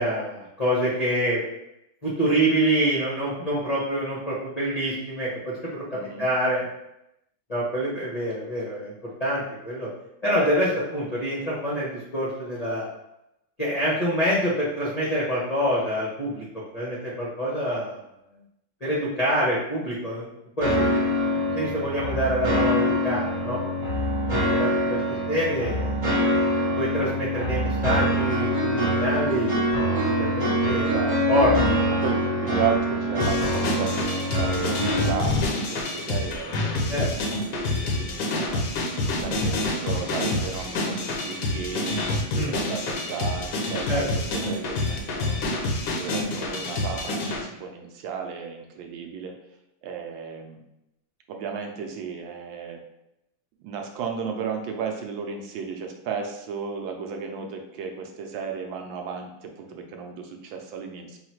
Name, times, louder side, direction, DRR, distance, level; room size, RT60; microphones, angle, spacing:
voice 1, 0.0-1.4 2.0-6.6 7.5-9.9 10.2-12.9 13.6-16.4 16.7-18.0 18.8-20.3 20.6-21.1 21.5-23.6 24.5-25.0 25.3-25.9 26.8-30.9 31.3-31.8 36.9-37.1 42.3-42.5 43.9-44.0, equal, 40° left, -7 dB, 0.5 m, -26 dB
voice 2, 5.9-6.3 30.8-31.2 31.9-38.7 39.2-45.7 46.0-49.4 49.8-50.6 51.3-52.8 53.6-61.2, right 6 dB, 80° right, 3 dB, 1.3 m, -34 dB
sound 1, 20.6-35.1, equal, 35° right, 0.5 m, -24 dB
sound 2, 33.2-47.4, left 2 dB, 65° left, 0.8 m, -27 dB
3.8 x 2.4 x 4.4 m, 0.86 s
omnidirectional pair, 2.2 m